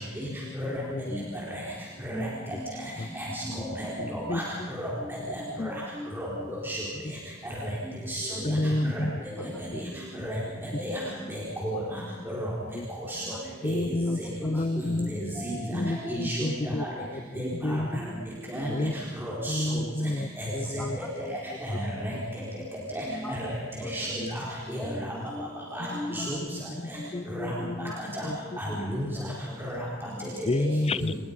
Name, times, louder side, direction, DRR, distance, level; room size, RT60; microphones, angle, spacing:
voice 1, 0.5-1.1 3.0-3.1 3.4-3.7 4.0-4.7 5.1-5.3 5.6-5.9 7.0-7.1 8.4-9.8 12.7-12.9 13.6-15.1 15.7-18.0 18.7-18.9 19.5-21.0 21.2-21.3 22.1-22.2 22.6-22.7 24.2-24.4 25.8-27.9 28.2-28.4 28.7-28.8 30.4-31.1, left 1 dB, 30° left, 16 dB, 0.6 m, -31 dB
voice 2, 3.1-4.4 4.7-5.7 6.1-6.3 6.6-6.8 7.4-7.5 8.1-8.6 8.9-9.0 9.4-9.5 10.2-10.3 10.6-11.0 11.3-11.8 12.3-12.5 13.1-13.2 13.6-13.8 15.1-15.6 16.0-16.5 16.8-16.9 17.4-17.8 18.5-18.9 19.2-19.8 20.4-20.5 21.6-22.2 22.9-23.4 23.9-24.4 24.7-24.9 25.7-26.4 27.3-27.5 28.2-28.3 28.6-29.1 29.6-29.8 30.2-30.3 31.0-31.1, equal, 10° right, -5 dB, 4.5 m, -33 dB
voice 3, 20.8-21.1 21.6-21.8 23.2-23.4 23.8-24.4 24.7-25.3 25.5-27.4 27.8-28.7 29.1-30.2 30.5-31.0, left 1 dB, 5° left, -2 dB, 4.7 m, -44 dB
27.5 x 21.0 x 5.5 m, 1.5 s
head